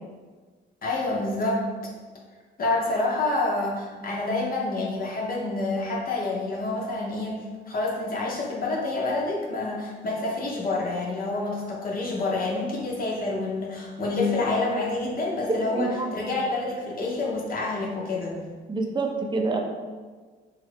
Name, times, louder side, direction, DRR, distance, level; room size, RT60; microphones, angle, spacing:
voice 1, 0.8-1.6 2.6-7.4 7.7-18.4, left 2 dB, 45° left, -3 dB, 0.7 m, -28 dB
voice 2, 15.7-16.1 18.7-19.6, right 3 dB, 25° right, 3 dB, 0.5 m, -27 dB
3.0 x 2.4 x 3.2 m, 1.4 s
cardioid pair, 90°, 20 cm